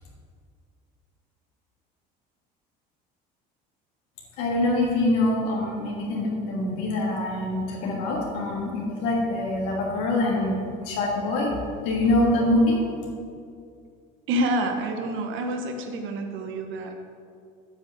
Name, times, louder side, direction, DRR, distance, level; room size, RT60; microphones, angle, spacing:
voice 1, 4.4-10.6 10.8-11.5 11.8-12.8, left 2 dB, 80° left, -3 dB, 2.9 m, -24 dB
voice 2, 14.3-17.1, right 1 dB, 65° right, 4 dB, 1.4 m, -28 dB
9.0 x 5.8 x 8.1 m, 2.3 s
supercardioid pair, 90°, 21 cm